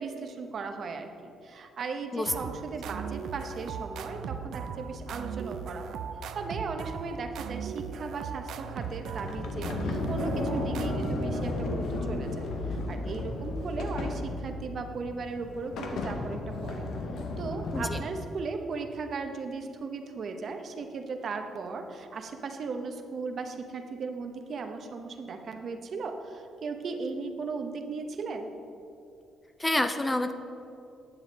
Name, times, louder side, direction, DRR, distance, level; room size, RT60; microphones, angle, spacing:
voice 1, 0.0-6.0 6.3-16.9 17.4-28.5, right 4 dB, 55° right, 5 dB, 0.8 m, -37 dB
sound 1, 2.3-11.8, right 6 dB, 75° right, 0.5 m, -38 dB
Sliding door, 8.8-18.0, left 2 dB, 75° left, 0.9 m, -33 dB
voice 2, 29.6-30.3, left 1 dB, 15° left, 8 dB, 0.5 m, -27 dB
9.5 x 7.1 x 4.1 m, 2.7 s
cardioid pair, 90°, 0 cm